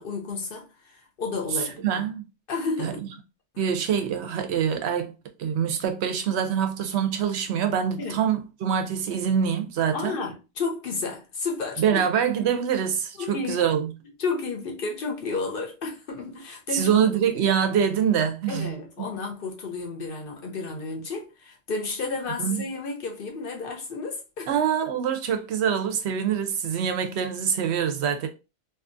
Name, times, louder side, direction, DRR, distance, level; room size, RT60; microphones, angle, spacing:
voice 1, 0.0-1.8 2.5-3.1 8.0-8.2 9.9-11.8 13.2-13.6 14.2-17.1 18.5-24.5, left 4 dB, 55° left, 0.7 m, -32 dB
voice 2, 1.8-2.2 2.8-2.9 3.6-5.1 5.4-10.2 11.8-13.9 16.7-19.1 22.4-22.6 24.5-28.3, right 8 dB, 65° right, 0.8 m, -25 dB
2.6 x 2.4 x 2.5 m
omnidirectional pair, 1.3 m